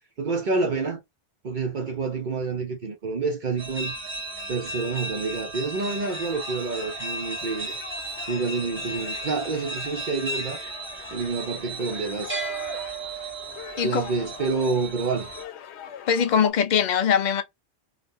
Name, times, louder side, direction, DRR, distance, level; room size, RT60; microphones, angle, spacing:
voice 1, 0.2-1.0 1.4-3.9 4.5-7.7 8.3-10.6 11.1-12.4 13.8-15.3, right 4 dB, 50° right, 0.8 m, -28 dB
sound 1, 3.6-15.4, right 3 dB, 10° right, 0.9 m, -35 dB
sound 2, 6.0-16.5, left 8 dB, 85° left, 0.9 m, -43 dB
voice 2, 16.1-17.4, left 7 dB, 50° left, 0.6 m, -21 dB
2.7 x 2.4 x 3.5 m
omnidirectional pair, 1.1 m